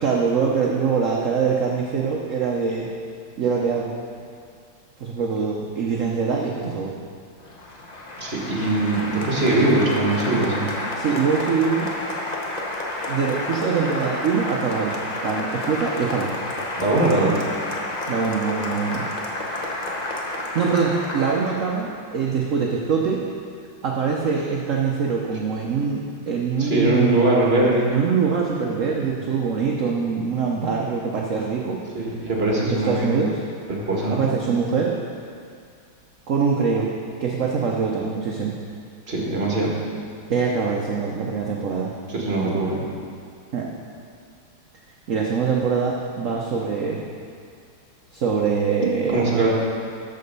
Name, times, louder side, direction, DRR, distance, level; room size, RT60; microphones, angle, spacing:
voice 1, 0.0-2.9 3.4-3.9 5.0-6.9 10.9-11.9 13.1-14.9 15.2-16.3 18.1-19.1 20.5-23.2 23.8-27.2 27.9-31.8 32.6-33.4 34.1-34.9 36.3-36.9 37.2-38.6 40.3-41.9 43.5-43.7 45.1-47.0 48.1-49.5, right 5 dB, 60° right, -1 dB, 0.8 m, -23 dB
Applause, 7.4-21.9, left 2 dB, 35° left, 0.6 m, -30 dB
voice 2, 8.2-10.7 16.8-17.4 26.6-27.9 31.9-33.1 33.7-34.2 39.1-39.7 42.1-42.8 48.8-49.5, right 2 dB, 30° right, -4 dB, 1.7 m, -21 dB
13.5 x 5.2 x 5.4 m, 2.3 s
omnidirectional pair, 2.2 m